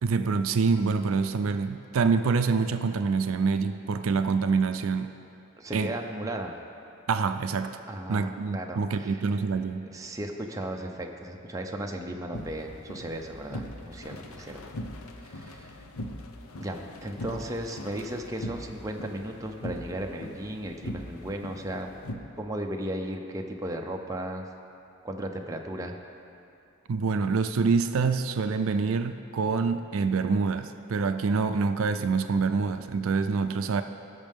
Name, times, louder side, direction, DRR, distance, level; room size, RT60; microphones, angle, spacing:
voice 1, 0.0-5.1 5.7-5.9 7.1-7.8 8.1-9.9 26.9-33.8, right 4 dB, 70° right, 9 dB, 0.4 m, -26 dB
voice 2, 5.6-6.6 7.9-9.4 9.9-14.7 15.2-15.8 16.6-21.9 22.4-24.4 25.0-26.0, right 1 dB, 15° right, 2 dB, 0.6 m, -35 dB
sound 1, 12.3-22.2, left 1 dB, 85° left, 0.7 m, -41 dB
19.0 x 6.5 x 3.6 m, 2.7 s
head